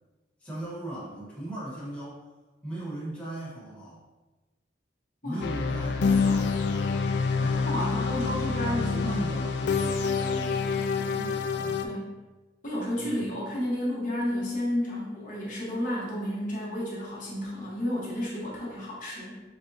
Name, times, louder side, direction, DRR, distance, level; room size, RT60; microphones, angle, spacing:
voice 1, 0.4-2.2 2.6-4.1 5.2-6.1 7.4-11.9 13.0-13.3, right 1 dB, 5° left, -8 dB, 1.2 m, -38 dB
sound 1, 5.4-11.9, left 5 dB, 60° left, 0.3 m, -27 dB
voice 2, 6.0-6.5 7.6-9.2 11.8-12.1 12.6-19.4, left 1 dB, 40° left, -6 dB, 1.0 m, -32 dB
4.2 x 3.4 x 2.7 m, 1.2 s
head